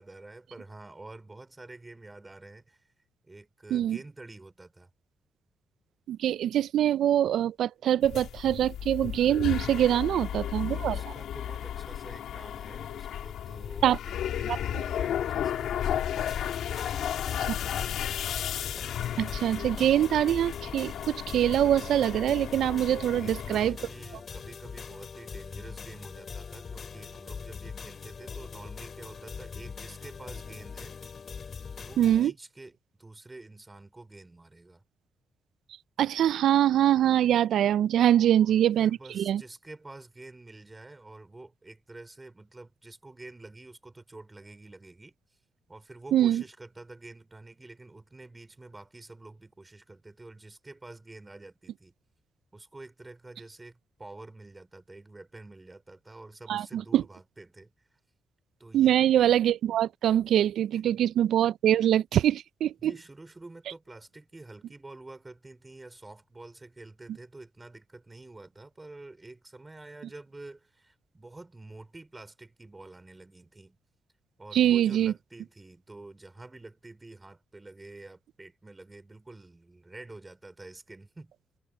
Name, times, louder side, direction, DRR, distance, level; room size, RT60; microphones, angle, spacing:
voice 1, 0.0-2.8 3.2-4.9 10.1-18.0 23.1-31.0 31.8-34.8 38.1-38.5 38.8-45.1 45.7-51.9 52.5-57.7 58.6-59.0 62.8-73.8 74.4-81.3, right 2 dB, 20° right, 4.5 m, -48 dB
voice 2, 6.1-11.0 13.8-14.0 19.2-23.8 32.0-32.3 36.0-39.4 46.1-46.4 56.5-57.0 58.7-62.9 74.5-75.1, right 11 dB, 75° right, 0.3 m, -24 dB
sound 1, 8.0-23.7, left 10 dB, 85° left, 3.2 m, -34 dB
sound 2, 16.3-32.3, left 5 dB, 45° left, 3.1 m, -42 dB
cardioid pair, 110°, 0 cm